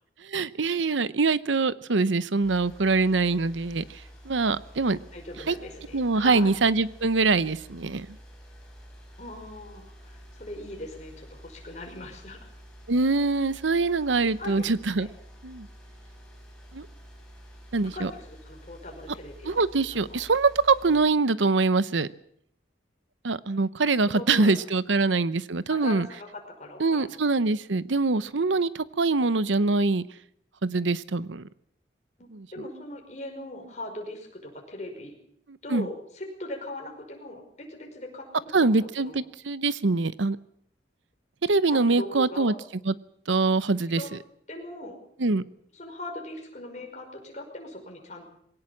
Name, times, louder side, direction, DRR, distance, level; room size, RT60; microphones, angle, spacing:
voice 1, 0.2-5.0 5.5-5.6 5.9-8.1 12.9-15.1 15.4-15.7 16.7-16.9 17.7-18.1 19.4-22.1 23.2-26.1 26.8-30.0 30.6-31.5 32.3-32.5 35.5-35.9 38.5-40.4 41.4-42.5 42.8-42.9 43.3-44.2 45.2-45.4, right 3 dB, 85° right, 17 dB, 0.8 m, -24 dB
sound 1, 2.4-21.1, equal, 5° left, 5.2 m, -49 dB
voice 2, 5.1-6.5 9.2-12.5 14.4-14.6 15.0-15.1 17.9-20.2 24.1-24.5 25.7-27.2 32.2-35.1 35.6-39.2 41.7-42.5 43.9-44.1 44.5-45.0 45.7-48.3, left 1 dB, 40° left, 2 dB, 5.4 m, -40 dB
22.5 x 17.5 x 7.3 m, 0.69 s
head